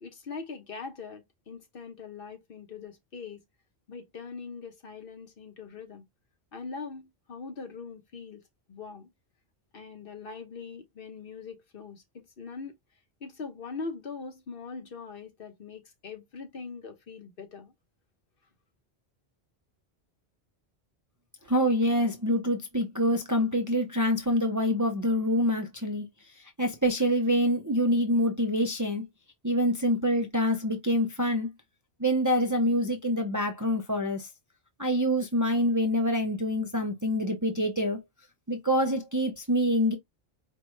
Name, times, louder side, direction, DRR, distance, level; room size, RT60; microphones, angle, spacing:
voice 1, 0.0-3.4 3.9-6.0 6.5-8.4 8.7-9.1 9.7-12.7 13.2-17.7, left 4 dB, 60° left, 1.1 m, -42 dB
voice 2, 21.5-26.1 26.6-29.1 29.4-31.5 32.0-34.3 34.8-38.0 38.5-40.0, equal, 20° right, 0.5 m, -26 dB
4.7 x 2.3 x 3.1 m
omnidirectional pair, 1.1 m